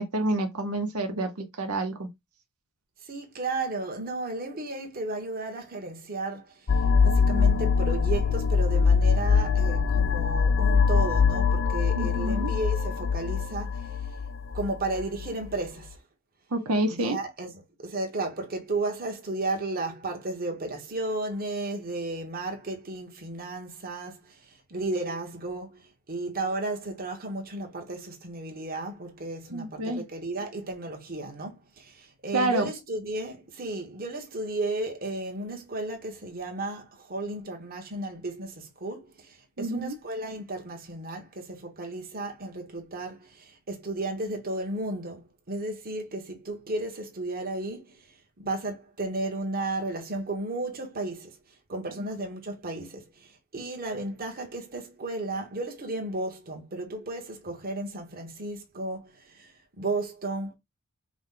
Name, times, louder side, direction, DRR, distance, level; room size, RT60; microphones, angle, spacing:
voice 1, 0.0-2.1 11.9-12.5 16.5-17.2 29.5-30.0 32.3-32.6 39.6-40.0, right 2 dB, 90° right, 0.9 m, -28 dB
voice 2, 3.0-14.1 14.5-16.0 16.9-48.1 48.4-51.4 51.7-60.6, right 2 dB, 45° right, 1.3 m, -34 dB
sound 1, 6.7-15.3, left 5 dB, 60° left, 0.6 m, -23 dB
4.9 x 2.2 x 3.8 m
head